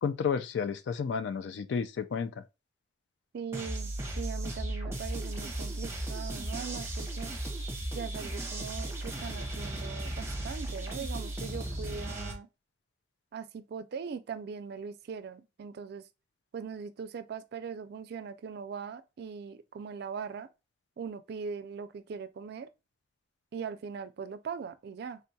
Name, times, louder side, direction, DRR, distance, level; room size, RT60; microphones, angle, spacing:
voice 1, 0.0-2.4, left 6 dB, 70° left, 0.3 m, -31 dB
voice 2, 3.3-7.3 7.9-12.5 13.3-16.1 16.5-20.5 21.0-22.7 23.5-25.2, right 6 dB, 60° right, 0.3 m, -40 dB
sound 1, 3.5-12.3, right 1 dB, 15° right, 0.7 m, -36 dB
3.6 x 2.3 x 2.6 m
head